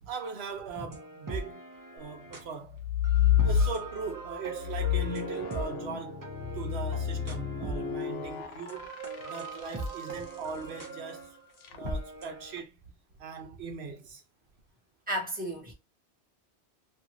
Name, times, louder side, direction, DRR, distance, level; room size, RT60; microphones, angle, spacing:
voice 1, 0.0-1.6 1.9-2.8 3.4-8.9 9.2-11.4 11.7-12.8 13.2-14.2, right 5 dB, 75° right, 0.9 m, -40 dB
sound 1, 0.9-2.5 3.0-8.2 8.5-12.6, right 2 dB, 25° right, 0.5 m, -40 dB
sound 2, 2.7-4.1 4.6-10.1 11.6-12.0, left 9 dB, 70° left, 0.8 m, -29 dB
voice 2, 15.1-15.7, equal, 10° right, 1.0 m, -34 dB
2.7 x 2.5 x 2.9 m
omnidirectional pair, 1.1 m